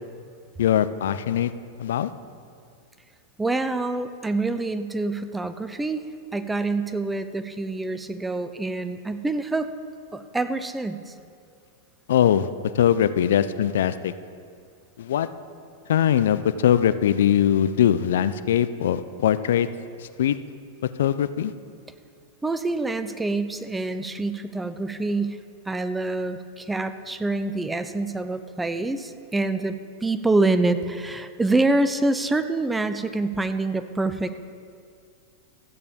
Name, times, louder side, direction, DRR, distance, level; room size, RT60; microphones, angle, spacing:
voice 1, 0.6-1.5 1.8-2.1 12.1-12.5 12.7-14.1 15.0-15.3 15.9-19.7 20.0-20.4 21.0-21.5, left 10 dB, 80° left, 14 dB, 0.4 m, -21 dB
voice 2, 3.4-6.0 6.3-9.7 10.1-11.1 22.4-25.4 25.7-34.4, right 2 dB, 10° right, 11 dB, 0.4 m, -26 dB
14.5 x 8.6 x 3.6 m, 2.2 s
supercardioid pair, 140°, 0 cm